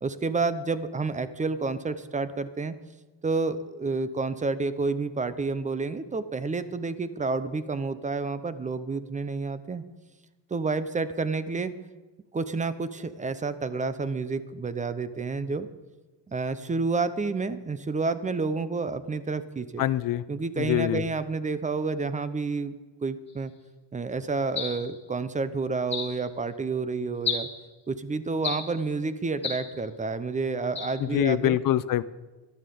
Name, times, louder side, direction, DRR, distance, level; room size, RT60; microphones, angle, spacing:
voice 1, 0.0-2.7 3.2-9.8 10.5-11.7 12.3-15.7 16.3-19.8 20.3-22.8 23.0-23.5 23.9-27.5 27.9-31.6, right 4 dB, 15° right, 13 dB, 0.6 m, -29 dB
voice 2, 19.8-20.2 20.6-21.0 31.0-32.0, left 12 dB, 45° left, 16 dB, 0.6 m, -24 dB
sound 1, 24.6-24.9 25.9-26.2 27.2-27.6 28.4-28.8 29.4-29.7 30.8-31.0, left 5 dB, 15° left, 3.1 m, -32 dB
12.0 x 11.0 x 6.9 m, 1.2 s
cardioid pair, 140°, 45 cm